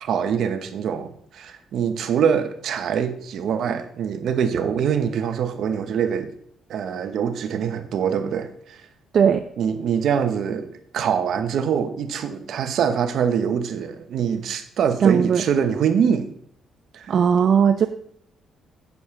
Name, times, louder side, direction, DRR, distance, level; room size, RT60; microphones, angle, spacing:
voice 1, 0.0-6.3 6.7-8.8 9.6-16.3 16.9-17.1, right 7 dB, 60° right, 9 dB, 1.0 m, -24 dB
voice 2, 15.0-15.4 17.1-17.9, right 7 dB, 45° right, 7 dB, 0.5 m, -17 dB
8.3 x 5.5 x 5.9 m, 0.67 s
cardioid pair, 150°, 0 cm